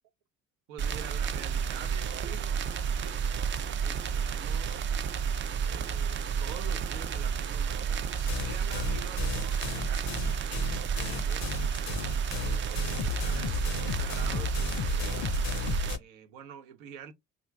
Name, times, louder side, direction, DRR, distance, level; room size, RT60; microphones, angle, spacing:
voice 1, 0.7-3.4 3.7-4.9 5.6-11.6 12.4-15.3 15.9-17.1, right 8 dB, 75° right, 0.6 m, -47 dB
sound 1, 0.8-16.0, right 7 dB, 30° right, 0.4 m, -31 dB
sound 2, 8.2-16.0, left 11 dB, 45° left, 0.5 m, -35 dB
2.4 x 2.2 x 3.1 m
hypercardioid pair, 55°, 40 cm